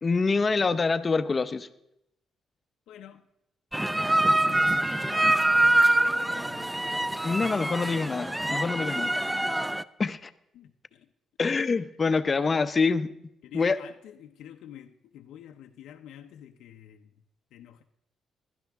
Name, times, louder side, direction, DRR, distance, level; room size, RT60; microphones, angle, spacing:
voice 1, 0.0-1.7 7.2-9.1 10.0-10.3 11.4-13.1 13.5-13.8, left 4 dB, 35° left, 12 dB, 0.7 m, -25 dB
voice 2, 0.6-0.9 2.9-3.2 3.7-5.5 6.2-7.2 7.8-7.9 8.9-9.6 10.5-11.1 13.4-17.1 17.5-17.8, left 10 dB, 85° left, 5 dB, 0.6 m, -48 dB
sound 1, 3.7-9.8, right 1 dB, 10° right, 0.4 m, -25 dB
16.5 x 11.5 x 3.5 m, 0.82 s
cardioid pair, 90°, 0 cm